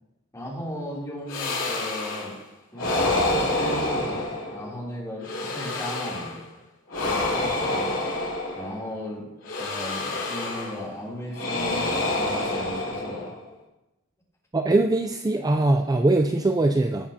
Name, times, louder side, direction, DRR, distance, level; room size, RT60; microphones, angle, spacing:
voice 1, 0.3-2.4 2.7-6.3 7.0-8.0 8.5-9.3 9.6-13.3, equal, 15° left, -5 dB, 3.1 m, -36 dB
sound 1, 1.3-2.4 2.8-4.8 5.2-6.4 6.9-8.9 9.4-10.9 11.3-13.5, left 2 dB, 65° left, 3.0 m, -28 dB
voice 2, 14.5-17.1, right 2 dB, 15° right, 5 dB, 0.3 m, -21 dB
17.5 x 7.1 x 2.8 m, 0.98 s
head